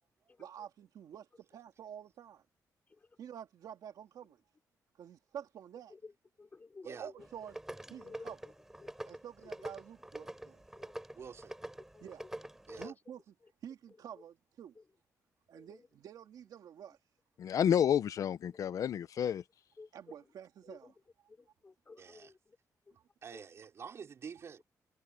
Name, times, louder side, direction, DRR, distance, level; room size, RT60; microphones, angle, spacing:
voice 1, 0.4-2.4 3.2-4.4 5.0-6.0 6.8-7.6 7.9-8.4 9.0-10.6 12.0-12.2 12.8-13.4 13.6-14.8 15.5-17.0 19.9-21.0 22.9-23.0, right 9 dB, 75° right, 2.2 m, -49 dB
voice 2, 6.4-7.0 7.9-8.3 8.8-9.2 10.7-10.9 11.9-12.1 12.7-12.9 15.5-15.7 19.8-20.1 20.7-20.9 21.4-22.6 23.3-23.4, left 4 dB, 25° left, 3.8 m, -53 dB
sound 1, 7.2-12.9, right 1 dB, 5° right, 5.3 m, -46 dB
voice 3, 11.1-11.5 12.7-12.9 22.0-22.3 23.2-24.6, right 6 dB, 45° right, 5.1 m, -48 dB
voice 4, 17.4-19.4, left 9 dB, 60° left, 0.6 m, -30 dB
wide cardioid pair, 175°, 7 cm